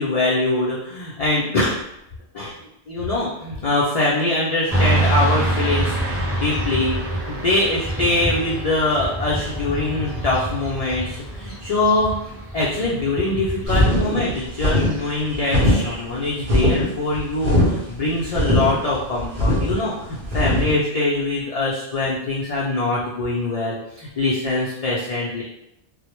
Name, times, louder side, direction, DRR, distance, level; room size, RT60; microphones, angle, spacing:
voice 1, 0.0-1.8 2.3-2.5 2.9-25.4, left 2 dB, 75° left, -6 dB, 0.3 m, -23 dB
Motorcycle / Traffic noise roadway noise, 4.7-14.1, right 1 dB, 15° right, 0.7 m, -26 dB
sound 1, 13.7-20.7, left 1 dB, 55° right, 0.8 m, -20 dB
2.0 x 2.0 x 2.9 m, 0.82 s
omnidirectional pair, 1.2 m